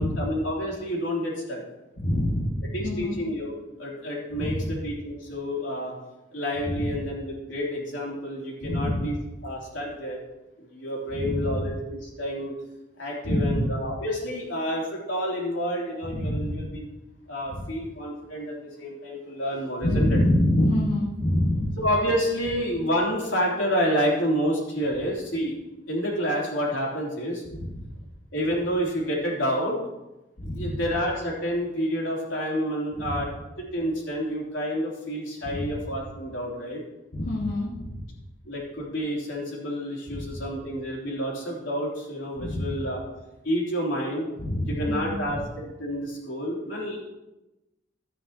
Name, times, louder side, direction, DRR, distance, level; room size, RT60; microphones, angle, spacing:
voice 1, 0.0-1.6 2.7-3.5 3.8-5.9 6.3-9.1 9.4-10.2 10.7-12.5 13.0-16.9 17.3-20.2 21.8-25.6 25.9-27.4 28.3-29.8 30.5-33.3 33.6-36.8 38.5-43.0 43.4-44.3 44.7-47.0, equal, 80° left, -3 dB, 3.1 m, -29 dB
voice 2, 2.0-3.2 4.3-4.8 6.6-7.0 8.6-9.0 11.1-11.6 13.2-13.7 16.1-16.7 17.5-17.6 19.8-21.8 27.5-27.7 30.4-30.8 33.0-33.1 35.4-35.7 37.1-38.0 40.1-40.4 42.4-42.7 44.4-45.4, left 1 dB, 60° left, -6 dB, 1.7 m, -26 dB
12.5 x 9.9 x 2.9 m, 1.0 s
head